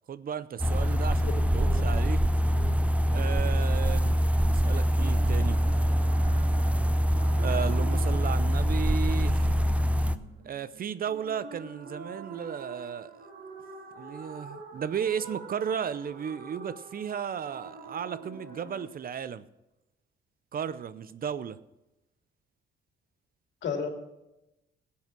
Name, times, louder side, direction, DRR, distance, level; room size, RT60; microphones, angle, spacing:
voice 1, 0.1-2.2 3.1-5.6 7.4-9.5 10.4-13.2 14.0-19.5 20.5-21.6, right 8 dB, 45° right, 0.6 m, -34 dB
sound 1, 0.6-10.2, equal, 5° right, 0.6 m, -24 dB
voice 2, 1.6-1.9 2.5-2.8 23.6-23.9, left 5 dB, 65° left, 2.6 m, -33 dB
sound 2, 4.9-18.9, right 3 dB, 65° right, 2.7 m, -46 dB
15.0 x 8.5 x 6.2 m
cardioid pair, 90°, 20 cm